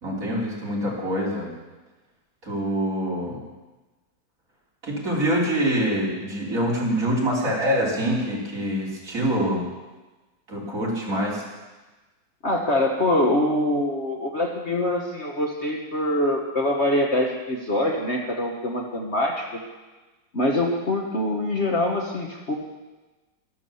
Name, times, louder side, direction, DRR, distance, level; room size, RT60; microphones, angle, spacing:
voice 1, 0.0-1.5 2.4-3.4 4.8-9.7 10.5-11.4, equal, 45° right, -4 dB, 3.9 m, -25 dB
voice 2, 12.4-19.5 20.3-22.5, left 1 dB, 40° left, 0 dB, 1.4 m, -24 dB
13.0 x 12.0 x 7.0 m, 1.2 s
omnidirectional pair, 2.0 m